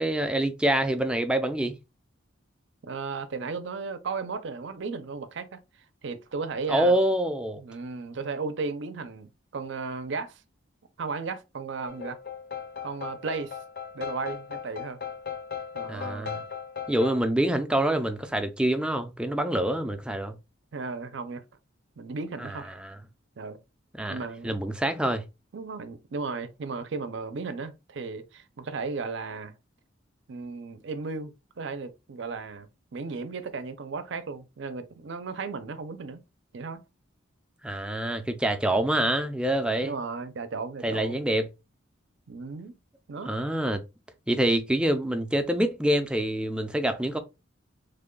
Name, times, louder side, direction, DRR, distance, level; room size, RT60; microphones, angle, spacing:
voice 1, 0.0-1.8 6.7-7.6 15.9-16.4 16.9-20.4 22.4-23.0 24.0-24.2 24.4-25.3 37.6-40.0 40.8-41.5 43.3-43.8 44.3-47.2, right 1 dB, 5° right, 0.4 m, -26 dB
voice 2, 2.8-5.6 6.0-7.0 7.6-10.4 11.0-12.2 12.8-13.6 13.9-15.0 15.7-16.4 20.7-21.4 22.0-22.7 23.4-23.6 24.1-24.5 25.5-29.5 30.3-36.2 36.5-36.8 39.8-41.3 42.3-42.8 43.1-43.4, right 4 dB, 65° right, 0.5 m, -35 dB
sound 1, 11.9-17.2, left 7 dB, 50° left, 0.6 m, -37 dB
3.3 x 2.2 x 3.7 m
head